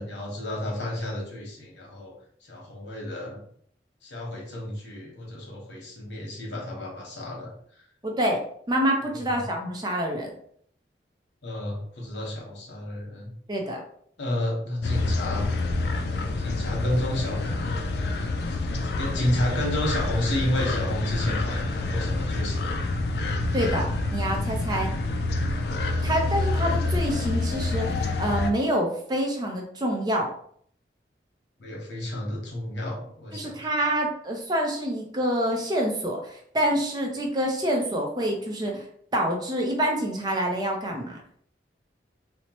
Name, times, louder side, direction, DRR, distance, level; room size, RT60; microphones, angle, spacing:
voice 1, 0.0-2.1 2.4-3.4 4.0-7.5 9.1-9.4 11.4-13.3 14.2-15.5 16.4-17.7 18.5-22.8 31.6-33.6, left 1 dB, 85° left, -1 dB, 0.9 m, -31 dB
voice 2, 8.0-8.4 8.7-10.3 13.5-13.8 23.5-24.9 26.0-30.3 33.3-38.9 39.1-41.4, right 1 dB, 25° right, 1 dB, 0.4 m, -27 dB
sound 1, 14.8-28.5, left 2 dB, 65° left, 0.3 m, -27 dB
2.9 x 2.1 x 2.9 m, 0.63 s
head